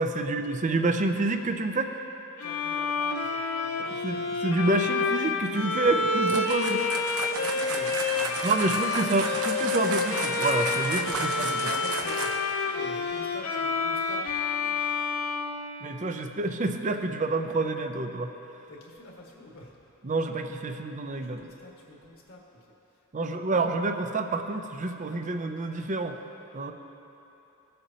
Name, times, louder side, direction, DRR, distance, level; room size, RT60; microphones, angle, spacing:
voice 1, 0.0-1.9 3.8-6.9 8.4-11.6 15.8-18.3 20.0-21.4 23.1-26.2 26.5-26.7, right 2 dB, 35° right, 6 dB, 0.5 m, -28 dB
Bowed string instrument, 2.4-16.3, left 4 dB, 85° left, 0.7 m, -29 dB
voice 2, 2.4-4.5 5.8-6.0 7.3-8.7 10.9-11.3 11.6-15.0 16.3-16.4 18.7-19.9 21.2-22.6 23.2-23.6, left 1 dB, 65° left, -2 dB, 1.5 m, -46 dB
sound 1, 6.2-12.6, right 3 dB, 85° right, 0.9 m, -33 dB
18.0 x 7.8 x 2.8 m, 3.0 s
head